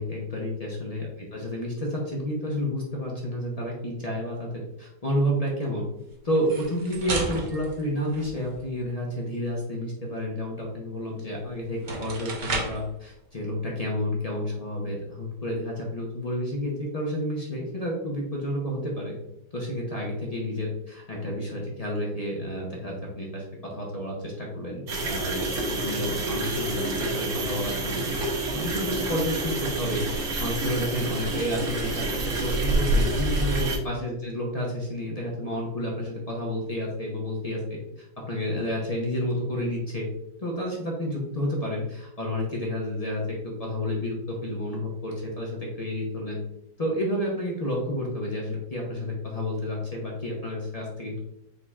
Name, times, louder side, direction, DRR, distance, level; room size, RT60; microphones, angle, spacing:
voice 1, 0.0-1.1 1.3-5.8 6.2-19.1 19.5-23.4 23.7-25.5 25.8-28.1 28.5-40.1 40.4-46.4 46.8-51.2, equal, 45° left, -3 dB, 0.5 m, -30 dB
sound 1, 6.3-8.7 11.2-11.3 11.7-12.9, right 3 dB, 85° right, 0.4 m, -34 dB
sound 2, 24.9-33.8, right 2 dB, 60° right, 1.3 m, -28 dB
5.4 x 4.2 x 2.3 m, 0.80 s
omnidirectional pair, 2.0 m